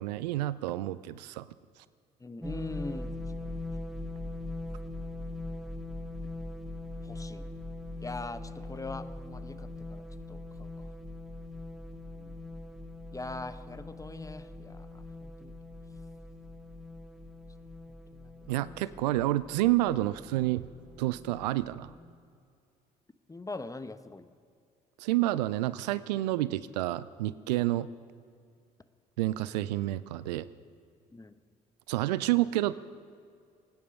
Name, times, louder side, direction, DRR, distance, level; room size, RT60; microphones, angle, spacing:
voice 1, 0.0-1.5 18.5-20.7 21.0-21.9 25.0-27.9 29.2-30.5 31.9-32.7, right 16 dB, 80° right, 17 dB, 0.5 m, -29 dB
voice 2, 2.2-3.1 3.4-3.5 7.0-7.5 8.0-10.9 12.1-12.5 13.1-15.5 17.9-18.5 23.3-24.3 31.1-31.3, left 3 dB, 15° left, 12 dB, 0.9 m, -42 dB
sound 1, 2.4-22.0, left 2 dB, ahead, 1.4 m, -42 dB
23.5 x 9.6 x 5.2 m, 2.3 s
hypercardioid pair, 50°, 21 cm